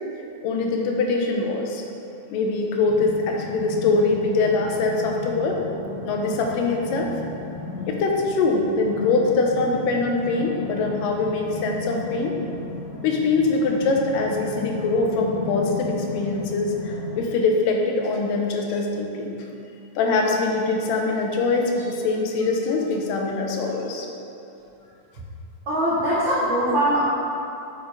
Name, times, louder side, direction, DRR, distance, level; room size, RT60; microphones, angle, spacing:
voice 1, 0.4-1.8 2.3-5.6 6.0-7.1 7.9-12.4 13.0-19.4 20.0-24.1, left 3 dB, 85° left, 1 dB, 2.4 m, -23 dB
sound 1, 2.9-17.2, left 4 dB, 55° left, 1.8 m, -35 dB
voice 2, 25.7-27.0, right 1 dB, 70° right, -9 dB, 1.1 m, -21 dB
6.2 x 5.5 x 4.8 m, 2.7 s
omnidirectional pair, 3.8 m